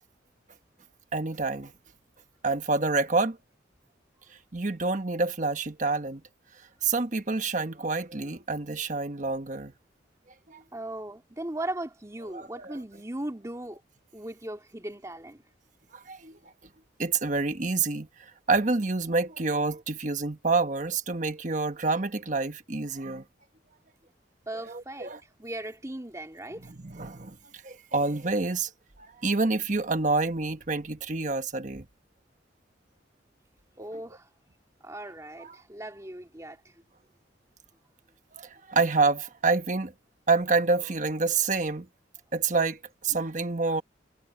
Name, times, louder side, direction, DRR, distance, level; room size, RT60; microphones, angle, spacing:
voice 1, 1.1-1.7 2.4-3.4 4.5-6.2 6.8-9.7 10.5-10.6 12.3-12.7 15.9-16.4 17.0-18.1 18.5-23.2 24.7-25.2 26.6-27.4 27.6-28.7 29.0-31.9 35.4-35.5 38.4-39.9 40.3-41.9 42.3-43.8, right 3 dB, 40° right, 1.3 m, -27 dB
voice 2, 10.7-13.8 14.1-15.4 24.5-25.1 25.4-26.7 33.8-34.3 34.8-36.7, right 1 dB, 15° right, 2.3 m, -38 dB
head